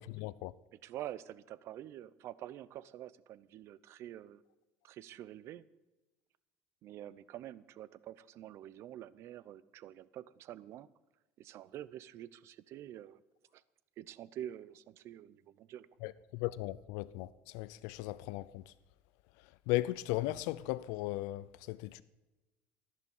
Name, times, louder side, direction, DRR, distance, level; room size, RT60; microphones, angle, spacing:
voice 1, 0.0-0.5 16.0-18.7 19.7-22.0, left 17 dB, 80° left, 0.5 m, -37 dB
voice 2, 0.7-4.4 4.8-5.7 6.8-10.9 11.4-13.2 13.5-13.6 14.0-15.9, right 12 dB, 55° right, 0.7 m, -47 dB
14.5 x 11.0 x 7.2 m
cardioid pair, 130°, 5 cm